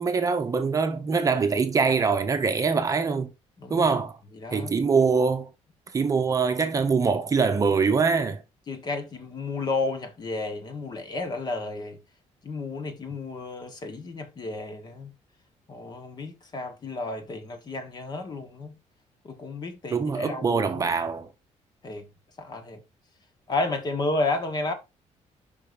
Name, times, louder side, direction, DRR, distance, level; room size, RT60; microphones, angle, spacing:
voice 1, 0.0-3.3 3.7-4.1 4.5-5.5 5.9-8.4 19.9-21.3, right 5 dB, 25° right, 0.9 m, -23 dB
voice 2, 3.6-4.0 4.3-4.8 8.7-12.0 12.4-15.1 15.7-18.8 19.2-20.9 21.8-22.0 22.4-22.8 23.5-24.7, left 3 dB, 35° left, 1.4 m, -32 dB
5.5 x 5.4 x 5.1 m
cardioid pair, 165°, 13 cm